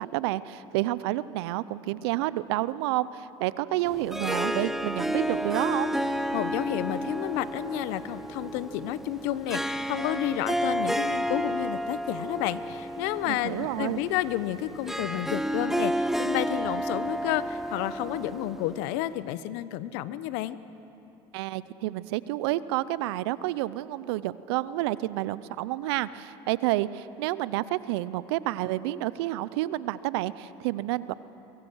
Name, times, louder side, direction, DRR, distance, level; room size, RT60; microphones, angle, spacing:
voice 1, 0.0-5.9 13.3-14.0 21.3-31.1, right 16 dB, 75° right, 17 dB, 0.6 m, -29 dB
Harp, 3.8-19.1, equal, 5° right, 0.9 m, -31 dB
voice 2, 6.3-20.6, left 14 dB, 70° left, 15 dB, 0.9 m, -31 dB
23.0 x 22.5 x 6.3 m, 2.9 s
hypercardioid pair, 80°, 14 cm